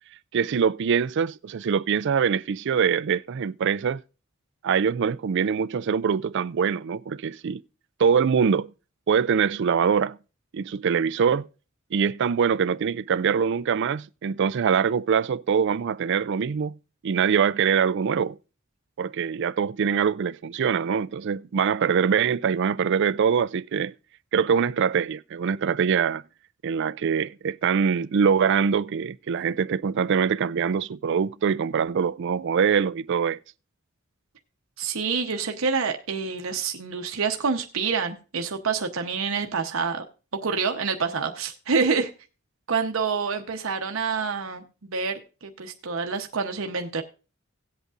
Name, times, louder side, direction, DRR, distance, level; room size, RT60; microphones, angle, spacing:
voice 1, 0.3-4.0 4.6-7.6 8.0-8.7 9.1-10.2 10.5-11.5 11.9-16.7 17.0-18.4 19.0-23.9 24.3-26.2 26.6-33.4, right 6 dB, 60° right, 0.4 m, -23 dB
voice 2, 34.8-40.0 40.4-42.1 42.7-47.0, right 5 dB, 75° right, 0.9 m, -27 dB
18.0 x 8.1 x 2.5 m
head